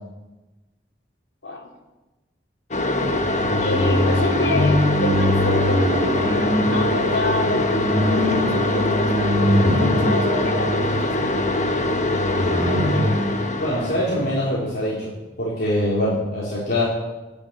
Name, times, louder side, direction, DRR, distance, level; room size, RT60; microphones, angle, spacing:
sound 1, 2.7-14.4, left 2 dB, 40° left, 1.2 m, -23 dB
sound 2, 3.0-14.6, left 1 dB, 35° right, 2.0 m, -23 dB
voice 1, 3.6-11.5 12.4-13.3, left 2 dB, 80° left, 0 dB, 3.4 m, -30 dB
voice 2, 13.6-15.1 15.4-16.8, left 1 dB, 55° left, -7 dB, 3.6 m, -23 dB
19.5 x 7.3 x 8.2 m, 1.1 s
head